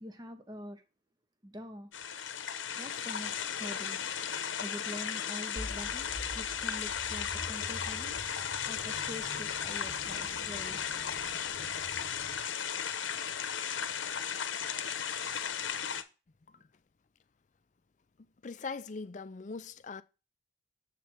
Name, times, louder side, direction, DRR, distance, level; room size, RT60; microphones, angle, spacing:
voice 1, 0.0-0.8 1.4-1.9 2.7-4.0 4.6-6.1 6.3-8.2 8.6-10.8, left 1 dB, 20° right, 0.7 m, -45 dB
sound 1, 1.9-16.0, left 8 dB, 75° left, 0.8 m, -35 dB
sound 2, 5.6-12.4, left 1 dB, 20° left, 1.1 m, -47 dB
voice 2, 18.4-20.0, left 4 dB, 40° left, 0.4 m, -41 dB
7.5 x 3.2 x 5.9 m
head